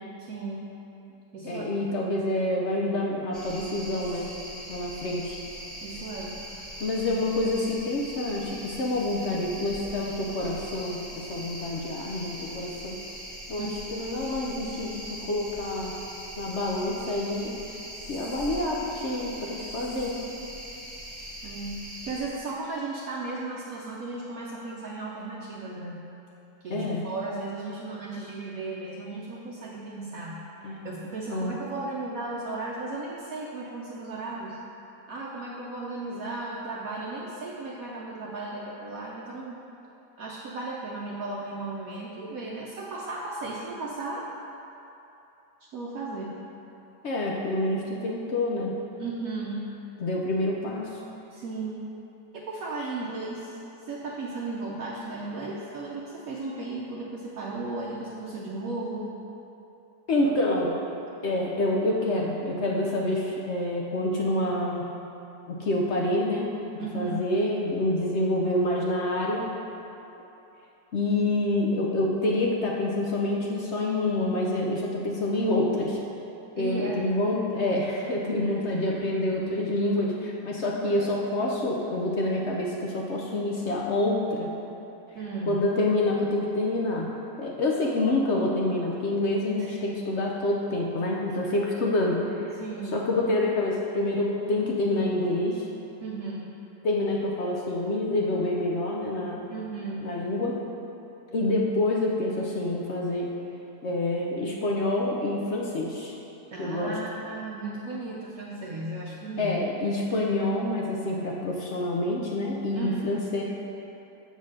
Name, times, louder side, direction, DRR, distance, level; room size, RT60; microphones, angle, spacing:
voice 1, 0.2-0.7 1.3-1.6 5.8-6.4 13.6-13.9 21.4-21.8 22.0-26.1 26.6-30.5 30.8-34.6 35.1-39.6 40.2-44.2 45.6-46.3 49.0-49.6 51.3-51.8 52.3-59.1 66.8-67.2 76.6-77.0 78.4-78.6 80.8-81.1 85.1-85.6 92.6-93.0 96.0-96.5 99.5-100.1 106.5-109.6 112.7-113.2, right 3 dB, 65° right, -4 dB, 1.0 m, -35 dB
voice 2, 1.4-4.3 4.7-5.4 6.8-13.0 13.5-15.9 16.4-17.5 18.1-20.1 26.7-27.0 30.6-31.0 31.3-31.6 47.0-48.7 50.0-51.0 60.1-60.7 61.2-64.9 65.5-66.5 66.7-69.5 70.9-76.0 76.6-84.5 85.5-87.1 87.4-92.6 92.9-95.7 96.8-99.5 100.0-100.6 101.3-103.3 103.8-106.1 106.6-106.9 109.4-113.4, left 1 dB, 65° left, -2 dB, 0.7 m, -27 dB
sound 1, 3.3-22.3, right 1 dB, ahead, 1.1 m, -41 dB
7.0 x 4.0 x 6.3 m, 2.9 s
omnidirectional pair, 1.9 m